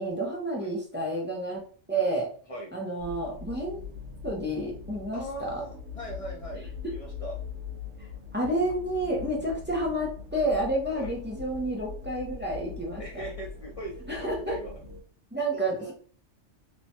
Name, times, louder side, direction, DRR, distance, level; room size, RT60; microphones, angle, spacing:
voice 1, 0.0-1.6 1.9-2.3 2.7-3.8 4.2-5.6 8.3-13.0 14.1-14.6 15.3-15.9, right 1 dB, 15° right, -2 dB, 0.4 m, -30 dB
sound 1, 3.0-15.0, left 6 dB, 75° right, 1.0 m, -42 dB
voice 2, 5.1-7.4 10.9-11.1 13.0-14.7 15.5-15.9, right 1 dB, 45° left, -2 dB, 0.5 m, -39 dB
3.0 x 2.1 x 2.7 m, 0.43 s
omnidirectional pair, 1.2 m